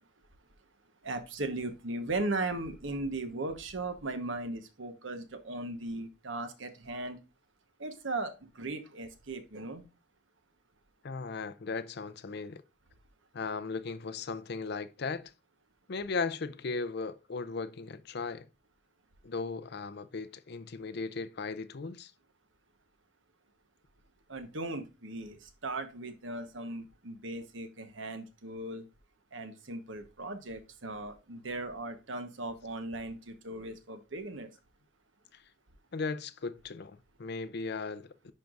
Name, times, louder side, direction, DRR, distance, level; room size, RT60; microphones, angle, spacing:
voice 1, 1.0-7.2 7.8-9.8 24.3-28.8 29.3-34.5, right 2 dB, 70° right, 1.1 m, -37 dB
voice 2, 11.0-12.6 13.3-15.3 15.9-18.5 19.2-22.1 35.3-35.4 35.9-38.3, left 4 dB, 55° left, 0.5 m, -37 dB
10.5 x 4.6 x 2.5 m
head